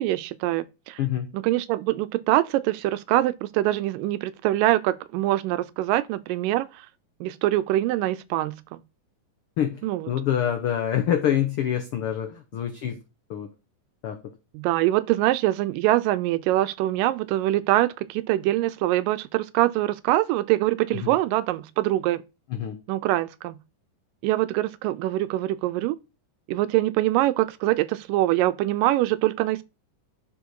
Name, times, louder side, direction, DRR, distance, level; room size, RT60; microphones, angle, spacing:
voice 1, 0.0-1.0 1.3-6.8 7.2-8.8 9.8-10.1 14.5-22.2 22.9-23.6 24.2-26.0 26.5-29.6, right 15 dB, 90° right, 2.2 m, -24 dB
voice 2, 9.6-13.0 13.3-13.5 14.0-14.2 20.9-21.2 22.5-22.8, left 10 dB, 90° left, 1.2 m, -26 dB
10.5 x 4.3 x 4.7 m
omnidirectional pair, 3.8 m